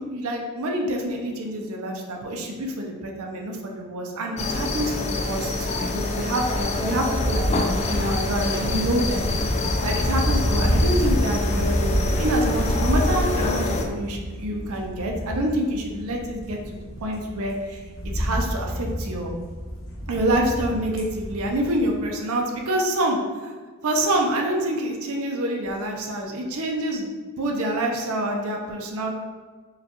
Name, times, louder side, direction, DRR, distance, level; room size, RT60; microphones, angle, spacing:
voice 1, 0.0-9.3 9.8-19.3 20.1-23.2 23.4-23.5 23.8-27.1 27.4-29.1, right 1 dB, 75° right, 1 dB, 0.5 m, -27 dB
sound 1, 4.4-13.8, left 2 dB, 30° left, 0.3 m, -27 dB
sound 2, 6.3-22.0, equal, 60° left, 0.8 m, -28 dB
4.8 x 2.3 x 2.9 m, 1.5 s
head